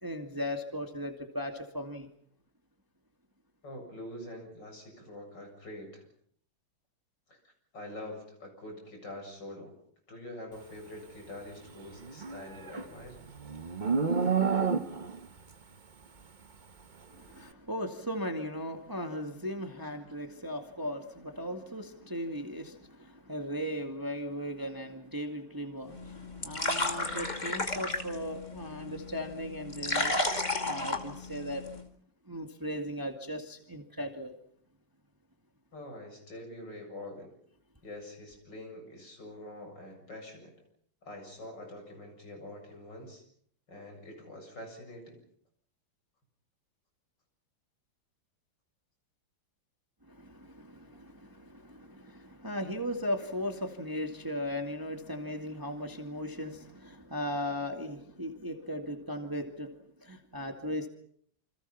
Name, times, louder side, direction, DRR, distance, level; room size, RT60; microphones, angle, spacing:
voice 1, 0.0-2.1 17.1-30.1 30.6-31.6 32.3-34.3 50.1-59.7 60.0-60.9, equal, 10° right, 4 dB, 2.1 m, -37 dB
voice 2, 3.6-6.1 7.3-7.4 7.7-9.8 10.1-13.2 35.7-37.3 37.8-40.5 41.0-43.2 43.7-45.2, left 1 dB, 55° left, 3 dB, 8.3 m, -45 dB
Livestock farm animals working animals, 12.0-15.3, right 5 dB, 30° right, 0.9 m, -30 dB
sound 1, 25.9-31.8, left 2 dB, 20° left, 2.3 m, -33 dB
28.5 x 26.5 x 5.8 m, 0.65 s
omnidirectional pair, 2.2 m